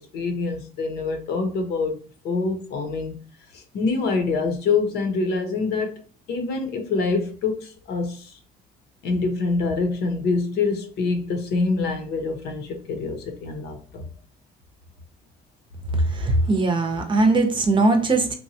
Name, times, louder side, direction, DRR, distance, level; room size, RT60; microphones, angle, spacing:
voice 1, 0.0-2.0 2.2-3.1 3.5-6.0 6.3-8.3 9.0-14.0, left 4 dB, 75° left, 0.8 m, -25 dB
voice 2, 15.9-18.3, right 2 dB, 30° right, 0.6 m, -20 dB
3.0 x 2.2 x 2.7 m
cardioid pair, 110°, 17 cm